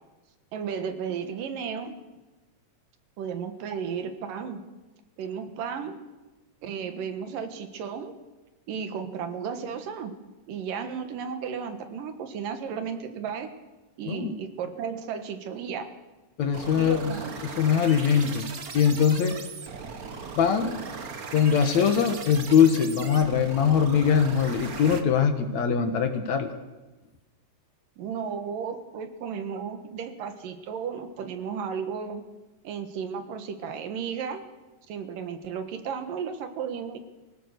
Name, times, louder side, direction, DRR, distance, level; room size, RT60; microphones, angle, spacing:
voice 1, 0.5-1.9 3.2-4.6 5.2-6.0 6.6-8.1 8.7-10.1 10.5-13.5 14.0-15.9 16.8-17.3 28.0-32.2 32.6-34.4 34.9-37.0, right 7 dB, 80° right, 7 dB, 3.1 m, -34 dB
voice 2, 16.4-17.1 17.4-18.5 18.7-19.4 20.4-20.8 21.3-26.5, left 7 dB, 65° left, 7 dB, 2.5 m, -22 dB
sound 1, 16.5-25.0, right 5 dB, 60° right, 0.9 m, -38 dB
24.5 x 17.0 x 6.6 m, 1.1 s
omnidirectional pair, 3.8 m